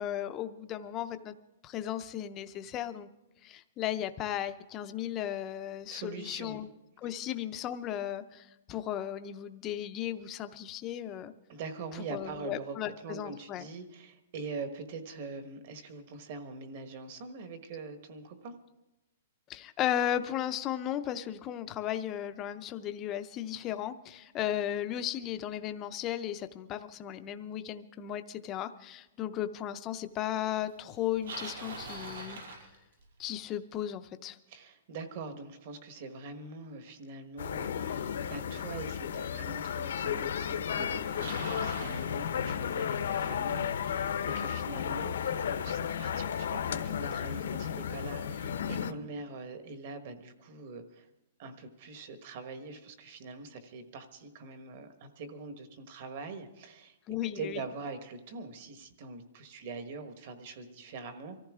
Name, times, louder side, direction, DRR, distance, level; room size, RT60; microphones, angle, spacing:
voice 1, 0.0-1.4 1.6-3.1 3.4-6.7 7.0-11.3 12.1-13.7 19.5-32.4 33.2-34.4 57.1-57.6, left 11 dB, 20° left, 9 dB, 0.5 m, -35 dB
voice 2, 5.9-6.6 11.5-18.5 34.5-51.1 51.4-57.0 57.2-61.4, right 4 dB, 40° right, 8 dB, 1.4 m, -43 dB
Bicycle, 30.9-33.3 38.3-38.4 39.2-39.3 40.4-40.5 40.7-42.1, right 3 dB, 85° right, 5.8 m, -43 dB
sound 1, 37.4-48.9, left 8 dB, 75° left, 0.9 m, -33 dB
24.5 x 14.5 x 3.6 m, 0.97 s
hypercardioid pair, 175°, 0 cm